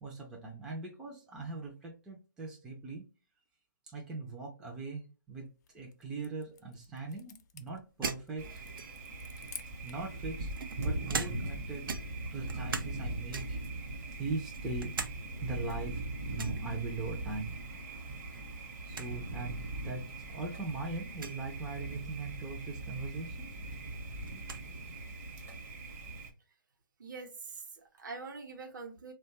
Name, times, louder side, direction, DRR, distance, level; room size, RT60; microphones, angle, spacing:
voice 1, 0.0-3.1 3.9-8.6 9.8-10.5 10.8-12.0 12.3-14.9 15.4-17.9 18.8-23.5, right 3 dB, 5° right, 0.4 m, -41 dB
sound 1, 5.5-10.1, left 7 dB, 50° left, 0.5 m, -53 dB
sound 2, 8.0-9.2 10.0-11.6 11.9-13.0 13.3-13.7 14.2-15.2 15.5-15.6 16.4-16.6 18.1-18.4 18.7-18.8 18.9-19.1 19.9-20.0 21.1-21.4 23.1-23.2 23.5-24.7, right 5 dB, 80° right, 0.5 m, -40 dB
Thunder, 8.4-26.3, right 2 dB, 40° right, 0.7 m, -40 dB
voice 2, 27.0-29.1, right 4 dB, 65° right, 0.9 m, -44 dB
3.1 x 2.2 x 2.8 m
hypercardioid pair, 155°, 11 cm